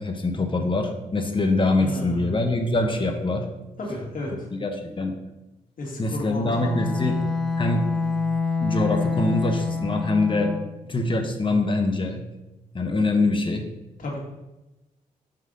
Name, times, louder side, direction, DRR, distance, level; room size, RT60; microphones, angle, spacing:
voice 1, 0.0-3.5 4.5-5.1 6.0-7.2 7.6-7.9 8.6-10.5 10.9-12.2 12.7-13.6, left 2 dB, 35° left, 4 dB, 1.0 m, -24 dB
voice 2, 1.8-2.4 3.8-4.5 5.8-7.0 14.0-14.2, left 1 dB, 65° left, -2 dB, 2.0 m, -33 dB
Bowed string instrument, 6.5-10.8, left 4 dB, ahead, 0.8 m, -27 dB
5.7 x 5.0 x 3.8 m, 0.99 s
cardioid pair, 70°, 15 cm